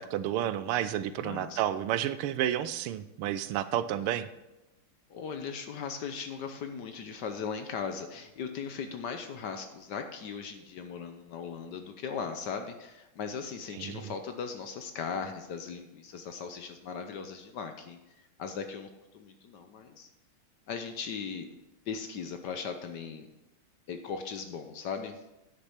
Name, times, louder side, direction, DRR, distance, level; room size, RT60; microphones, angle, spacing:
voice 1, 0.0-4.3 13.7-14.1, right 11 dB, 85° right, 13 dB, 1.6 m, -31 dB
voice 2, 1.2-1.6 5.1-18.0 18.4-18.9 19.1-20.1 20.7-21.5 21.9-23.3 23.9-25.2, left 6 dB, 65° left, 6 dB, 1.2 m, -38 dB
9.6 x 6.6 x 5.8 m, 0.94 s
omnidirectional pair, 2.4 m